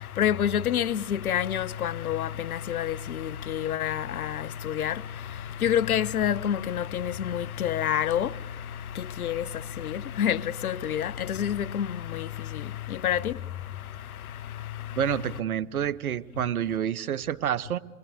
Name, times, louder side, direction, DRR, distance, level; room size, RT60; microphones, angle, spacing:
voice 1, 0.0-15.4, left 10 dB, 75° left, 0.9 m, -29 dB
voice 2, 14.9-17.8, right 9 dB, 75° right, 0.9 m, -28 dB
27.0 x 22.0 x 9.3 m
figure-of-eight pair, 95°, 43 cm